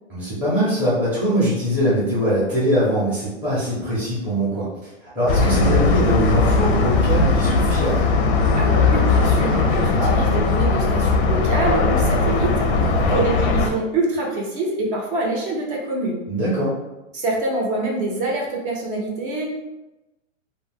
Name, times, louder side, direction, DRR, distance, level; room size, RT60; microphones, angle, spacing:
voice 1, 0.1-8.1 10.0-10.2 12.7-13.2 16.3-16.7, equal, 5° right, -10 dB, 0.6 m, -22 dB
sound 1, 5.3-13.7, left 3 dB, 45° left, 0.5 m, -18 dB
voice 2, 8.6-16.2 17.1-19.5, right 2 dB, 45° right, -1 dB, 0.8 m, -25 dB
2.3 x 2.2 x 3.4 m, 1.0 s
hypercardioid pair, 145°, 38 cm